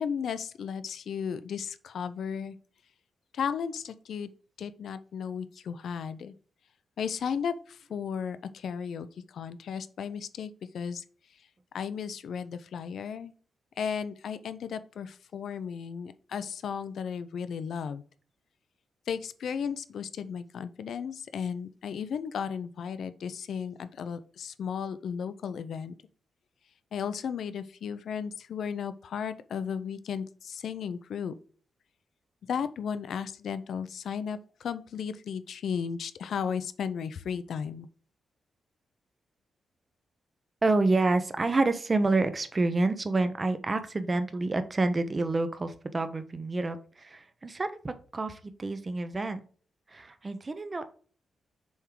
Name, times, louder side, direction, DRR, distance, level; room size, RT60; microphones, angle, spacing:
voice 1, 0.0-2.6 3.3-4.3 4.6-6.3 7.0-11.0 11.7-13.3 13.8-18.0 19.1-25.9 26.9-31.3 32.5-37.9, left 7 dB, 65° left, 12 dB, 0.5 m, -35 dB
voice 2, 40.6-49.4 49.9-50.9, right 2 dB, 20° right, 10 dB, 0.6 m, -28 dB
7.1 x 3.6 x 4.6 m, 0.42 s
wide cardioid pair, 175°, 0 cm